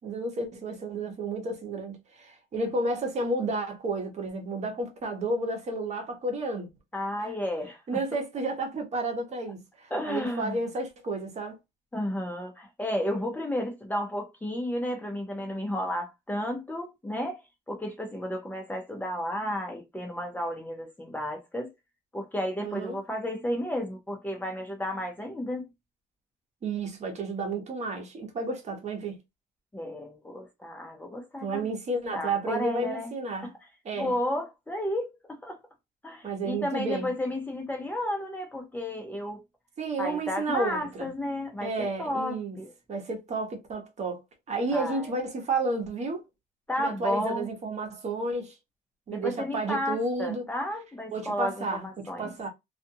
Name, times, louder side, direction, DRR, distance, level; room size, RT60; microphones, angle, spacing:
voice 1, 0.0-6.7 7.2-7.3 7.9-11.6 22.6-23.0 26.6-29.2 31.4-33.5 33.8-34.1 36.2-37.1 39.8-41.1 41.6-42.6 42.9-44.2 44.5-46.2 46.8-48.5 49.1-50.5 51.1-52.5, right 2 dB, 40° right, 1.0 m, -31 dB
voice 2, 6.9-8.0 9.9-10.6 11.9-17.4 17.7-21.7 22.1-25.6 29.7-31.7 32.1-33.1 33.4-33.5 34.0-35.6 36.0-39.4 40.0-42.7 44.7-45.2 46.7-47.5 49.1-52.3, left 1 dB, 10° left, 0.8 m, -32 dB
2.5 x 2.5 x 2.6 m
cardioid pair, 110°, 17 cm